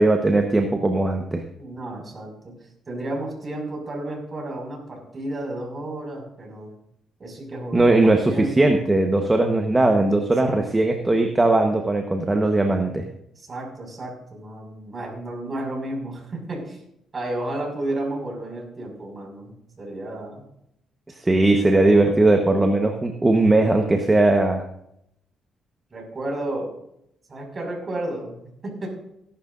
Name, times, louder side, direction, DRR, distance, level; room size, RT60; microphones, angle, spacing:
voice 1, 0.0-1.4 7.7-13.0 21.2-24.6, right 2 dB, 15° right, 3 dB, 1.2 m, -19 dB
voice 2, 1.6-2.6 2.9-6.7 7.2-8.9 10.4-10.9 13.4-16.8 17.1-20.4 21.6-22.2 23.3-23.4 25.9-26.7 27.3-28.9, right 1 dB, 35° right, 1 dB, 5.7 m, -32 dB
17.5 x 11.5 x 2.6 m, 0.77 s
cardioid pair, 90°, 0 cm